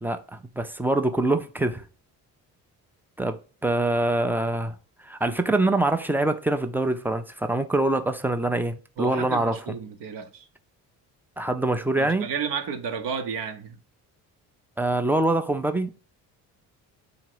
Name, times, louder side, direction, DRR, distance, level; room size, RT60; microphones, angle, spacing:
voice 1, 0.0-1.8 3.2-4.7 5.0-9.6 11.4-12.3 14.8-15.9, right 2 dB, 5° right, 0.4 m, -24 dB
voice 2, 9.0-10.5 12.0-13.8, right 6 dB, 60° right, 0.8 m, -32 dB
3.8 x 2.8 x 4.6 m
hypercardioid pair, 55°, 48 cm